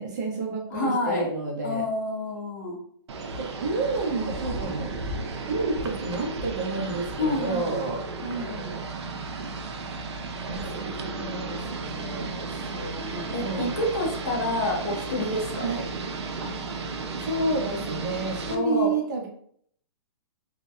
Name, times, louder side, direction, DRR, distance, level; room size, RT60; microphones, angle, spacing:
voice 1, 0.0-1.8 3.4-5.0 5.5-8.0 10.5-12.4 13.4-13.7 15.6-15.8 16.4-16.5 17.2-19.3, right 3 dB, 40° right, 0 dB, 0.6 m, -30 dB
voice 2, 0.7-1.3 1.6-2.8 7.2-7.8 8.2-8.8 12.0-15.6 18.5-19.0, left 1 dB, 40° left, 0 dB, 0.6 m, -29 dB
sound 1, 3.1-18.6, right 3 dB, 90° right, 0.5 m, -34 dB
2.6 x 2.1 x 2.3 m, 0.63 s
hypercardioid pair, 175°, 14 cm